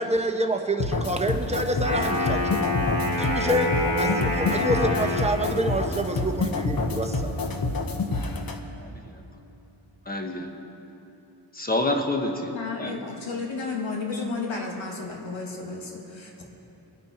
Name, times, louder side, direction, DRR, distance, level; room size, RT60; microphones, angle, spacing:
voice 1, 0.0-2.7 3.2-7.3, right 1 dB, 15° right, 4 dB, 1.1 m, -27 dB
sound 1, 0.8-8.6, left 3 dB, 50° left, 1.1 m, -28 dB
Wind instrument woodwind instrument, 1.7-5.7, left 1 dB, 70° left, 3.2 m, -27 dB
voice 2, 10.1-10.5 11.5-12.5 12.8-12.9, left 2 dB, 20° left, 3 dB, 1.4 m, -27 dB
voice 3, 12.5-16.4, left 4 dB, 90° left, 0 dB, 2.2 m, -32 dB
23.0 x 9.6 x 4.4 m, 3.0 s
wide cardioid pair, 95°, 45 cm